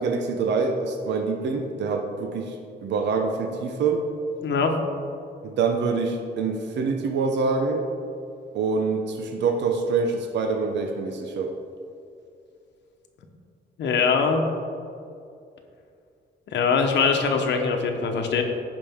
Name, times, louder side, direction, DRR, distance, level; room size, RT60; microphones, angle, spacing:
voice 1, 0.0-4.0 5.4-7.8 8.5-11.5, right 4 dB, 75° right, 4 dB, 0.8 m, -25 dB
voice 2, 4.4-4.7 13.8-14.4 16.5-18.4, left 5 dB, 80° left, 4 dB, 1.1 m, -22 dB
15.0 x 5.1 x 3.6 m, 2.5 s
cardioid pair, 130°, 18 cm